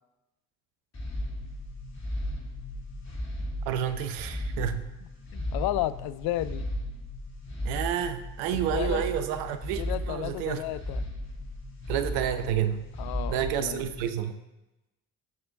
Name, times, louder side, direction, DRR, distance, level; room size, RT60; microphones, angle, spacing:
sound 1, 0.9-14.1, left 1 dB, 35° left, 2.8 m, -35 dB
voice 1, 3.7-4.9 7.6-10.6 11.9-12.9 13.3-14.4, right 10 dB, 70° right, 9 dB, 0.8 m, -30 dB
voice 2, 5.3-6.7 8.7-9.0 9.8-11.1 13.0-13.9, left 14 dB, 55° left, 16 dB, 0.5 m, -32 dB
16.0 x 6.7 x 2.6 m, 1.0 s
figure-of-eight pair, 40°, 44 cm